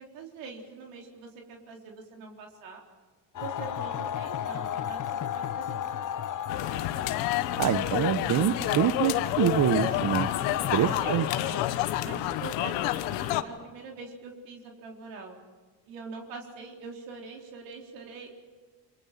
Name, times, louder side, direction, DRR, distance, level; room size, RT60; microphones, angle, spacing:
voice 1, 0.0-2.8 3.3-6.3 10.4-11.7 12.0-15.4 15.9-18.3, right 4 dB, 85° right, 0 dB, 4.1 m, -43 dB
sound 1, 3.3-11.8, left 10 dB, 45° left, 1.1 m, -35 dB
sound 2, 6.5-13.4, left 14 dB, 90° left, 1.2 m, -29 dB
voice 2, 7.6-10.3 10.7-11.2, right 10 dB, 50° right, 10 dB, 1.1 m, -25 dB
29.5 x 23.0 x 5.9 m, 1.4 s
supercardioid pair, 95°, 42 cm